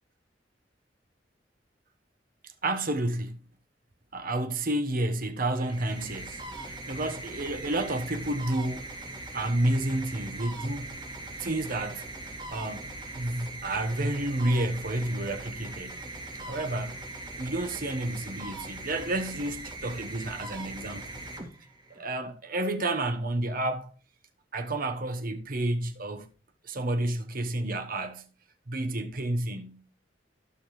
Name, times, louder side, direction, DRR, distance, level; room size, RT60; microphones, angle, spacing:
voice 1, 2.4-3.4 4.1-8.9 9.3-11.1 11.4-12.1 12.5-16.0 16.3-17.0 17.4-21.2 21.9-23.9 24.5-26.3 26.6-28.3 28.7-29.9, right 1 dB, 50° right, 1.1 m, -30 dB
sound 1, 5.5-22.1, right 2 dB, 25° right, 2.6 m, -41 dB
15.5 x 6.3 x 3.2 m
head